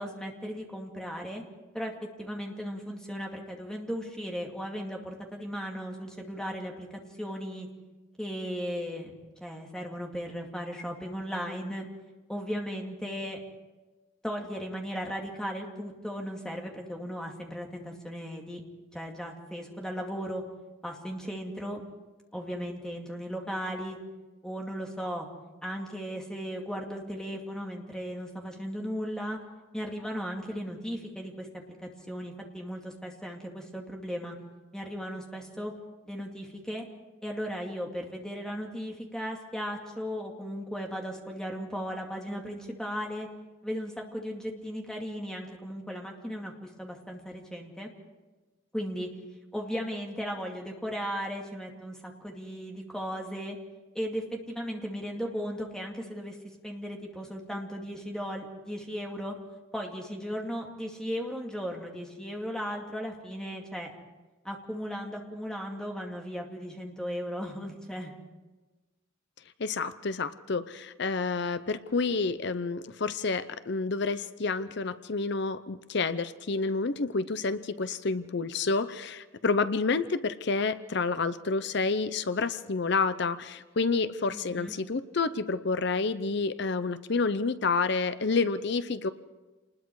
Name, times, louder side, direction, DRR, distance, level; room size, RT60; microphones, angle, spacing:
voice 1, 0.0-1.4 1.7-6.9 7.2-7.7 8.2-11.9 12.3-13.4 14.2-18.6 18.9-20.4 20.8-21.8 22.3-24.0 24.4-25.3 25.6-29.4 29.7-34.3 34.7-35.7 36.1-36.8 37.2-43.3 43.6-47.9 48.7-49.1 49.5-53.6 53.9-56.4 56.6-59.3 59.7-63.9 64.4-68.1 84.3-84.7, equal, 5° left, 0 dB, 2.3 m, -36 dB
voice 2, 69.6-89.1, left 4 dB, 55° left, 13 dB, 0.7 m, -29 dB
27.0 x 20.5 x 4.8 m, 1.2 s
head